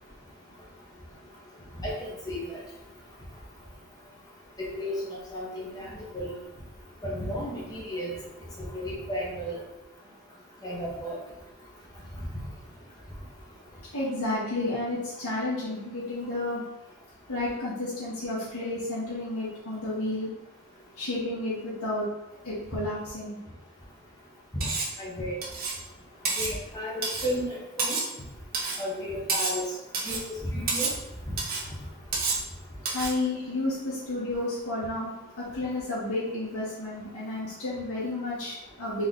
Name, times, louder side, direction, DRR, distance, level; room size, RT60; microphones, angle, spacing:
voice 1, 1.8-2.4 4.7-6.3 7.0-8.1 8.7-9.6 10.6-11.2 24.5-24.6 25.0-25.4 26.4-28.0 28.8-29.6 30.0-30.2 30.5-30.9, equal, 15° left, -5 dB, 1.2 m, -33 dB
voice 2, 13.9-16.6 17.3-20.3 21.0-22.1 22.4-23.4 32.9-39.1, left 2 dB, 85° left, -9 dB, 1.5 m, -31 dB
Cutlery silverware, 24.6-25.0 25.4-25.8 26.2-26.5 27.0-27.3 27.8-28.1 28.5-28.8 29.3-29.6 29.9-30.3 30.7-31.0 31.4-31.7 32.1-32.5 32.9-33.2, right 4 dB, 40° right, 0.8 m, -29 dB
4.1 x 3.3 x 3.8 m, 0.89 s
head